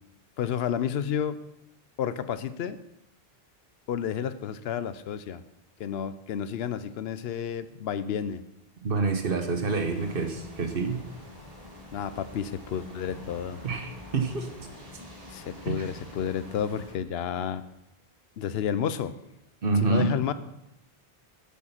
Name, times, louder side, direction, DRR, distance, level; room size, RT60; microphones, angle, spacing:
voice 1, 0.4-1.4 2.0-2.8 3.9-5.4 5.8-8.4 11.9-13.6 15.3-17.6 18.4-19.2 19.8-20.3, left 8 dB, 80° left, 13 dB, 0.8 m, -31 dB
voice 2, 8.8-11.0 13.6-14.7 15.7-15.8 19.6-20.1, right 4 dB, 65° right, 5 dB, 1.2 m, -27 dB
sound 1, 9.7-16.9, left 1 dB, 35° right, 3.0 m, -46 dB
8.1 x 7.4 x 5.8 m, 0.87 s
omnidirectional pair, 1.0 m